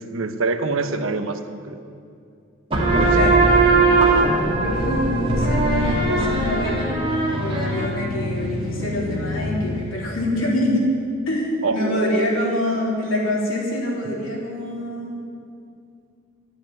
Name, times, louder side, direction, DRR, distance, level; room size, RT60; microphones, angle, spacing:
voice 1, 0.0-1.8 2.8-3.2 11.6-12.3, right 3 dB, 85° right, 8 dB, 0.9 m, -25 dB
sound 1, 2.7-10.0, right 2 dB, 30° right, 2.7 m, -20 dB
voice 2, 4.5-7.1 7.4-10.9 11.3-15.2, left 1 dB, 90° left, -4 dB, 3.6 m, -25 dB
13.0 x 8.2 x 9.2 m, 2.4 s
head